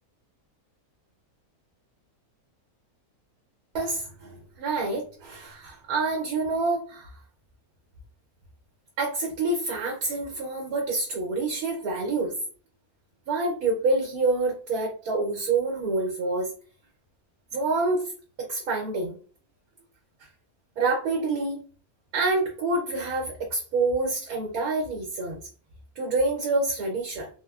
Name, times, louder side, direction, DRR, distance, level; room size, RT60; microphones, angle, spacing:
voice 1, 3.7-7.1 9.0-12.3 13.3-16.5 17.5-18.1 18.5-19.1 20.8-21.6 22.1-25.4 26.0-27.3, right 3 dB, 80° right, 0 dB, 1.2 m, -27 dB
3.3 x 2.1 x 2.3 m, 0.40 s
omnidirectional pair, 1.6 m